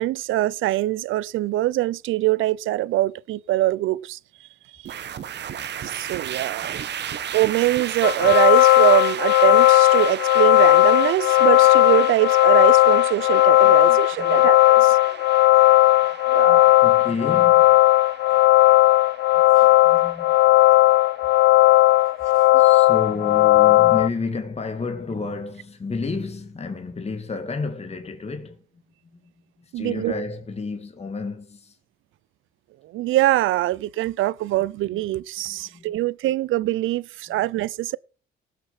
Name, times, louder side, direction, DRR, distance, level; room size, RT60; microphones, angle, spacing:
voice 1, 0.0-4.5 4.7-5.0 5.8-6.7 7.3-15.0 16.3-16.7 19.6-19.7 22.5-22.6 29.7-30.2 32.8-38.0, right 16 dB, 80° right, 0.5 m, -23 dB
sound 1, 4.8-24.1, right 9 dB, 60° right, 1.3 m, -35 dB
sound 2, 8.0-24.1, left 18 dB, 90° left, 0.6 m, -16 dB
voice 2, 13.6-14.5 14.8-15.3 16.3-17.8 19.3-20.6 22.6-29.3 29.6-31.8 34.9-35.0 35.5-36.0 37.3-37.4, left 4 dB, 30° left, 2.4 m, -32 dB
18.5 x 6.7 x 5.6 m
cardioid pair, 90°, 20 cm